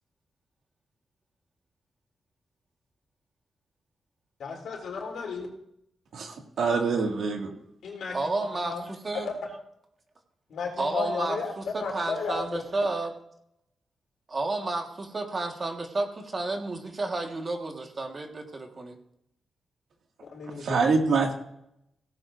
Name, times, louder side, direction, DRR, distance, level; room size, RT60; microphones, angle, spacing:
voice 1, 4.4-5.5 7.8-8.9 10.5-12.6 20.2-20.8, left 4 dB, 90° left, 0 dB, 3.4 m, -34 dB
voice 2, 6.1-7.5 20.7-21.3, right 4 dB, 70° right, 1 dB, 2.1 m, -25 dB
voice 3, 8.1-9.3 10.8-13.1 14.3-19.0, right 2 dB, 30° right, 3 dB, 1.6 m, -31 dB
17.0 x 15.5 x 2.6 m, 0.76 s
wide cardioid pair, 175°, 0 cm